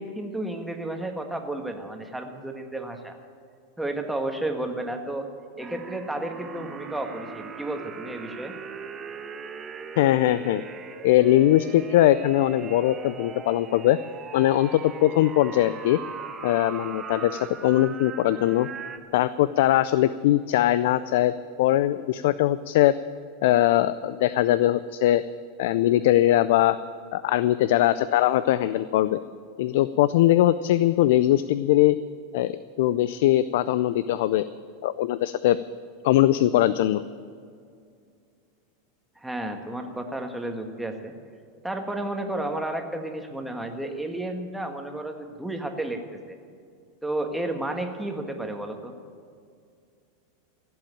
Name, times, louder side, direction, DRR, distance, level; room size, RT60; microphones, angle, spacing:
voice 1, 0.0-3.2 3.8-5.3 5.6-8.5 39.2-41.1 41.6-46.0 47.0-48.9, right 1 dB, 5° right, 4 dB, 1.6 m, -32 dB
sound 1, 5.6-19.0, right 6 dB, 25° right, 1.1 m, -40 dB
voice 2, 10.0-10.7 11.0-14.0 14.3-16.0 16.4-18.7 19.1-22.9 23.4-25.2 25.6-26.8 27.1-29.2 29.6-32.0 32.3-34.4 34.8-35.6 36.0-37.0, left 14 dB, 65° left, 15 dB, 0.4 m, -21 dB
16.0 x 7.9 x 8.9 m, 2.3 s
hypercardioid pair, 105°, 0 cm